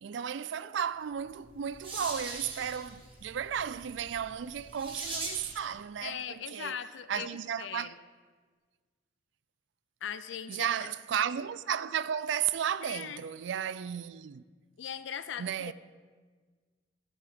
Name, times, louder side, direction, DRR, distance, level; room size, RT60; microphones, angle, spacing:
voice 1, 0.0-6.8 7.1-7.9 10.5-14.4 15.4-15.7, right 8 dB, 80° right, 0.4 m, -34 dB
sound 1, 1.3-5.7, right 2 dB, 30° right, 1.8 m, -42 dB
voice 2, 6.0-7.9 10.0-10.9 12.8-13.2 14.8-15.7, left 8 dB, 90° left, 0.4 m, -40 dB
16.0 x 7.3 x 3.6 m
head